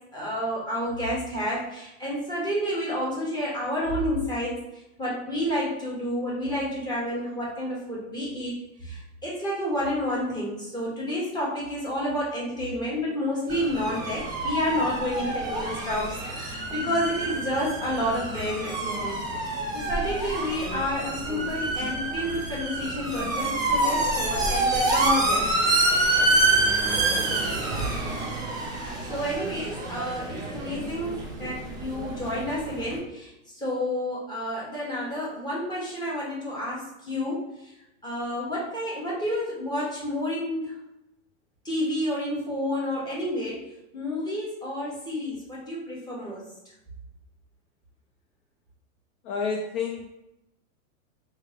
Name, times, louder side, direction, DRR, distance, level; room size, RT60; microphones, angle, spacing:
voice 1, 0.1-4.5 5.0-8.5 8.8-19.2 19.7-25.5 28.8-37.4 38.0-40.7 41.6-43.7 43.9-46.4, left 1 dB, 10° left, -6 dB, 1.2 m, -30 dB
sound 1, 13.5-33.0, right 2 dB, 10° right, 0.6 m, -27 dB
voice 2, 26.9-27.7 49.2-50.1, left 5 dB, 40° left, 3 dB, 0.4 m, -32 dB
3.1 x 2.8 x 3.5 m, 0.89 s
hypercardioid pair, 125°, 42 cm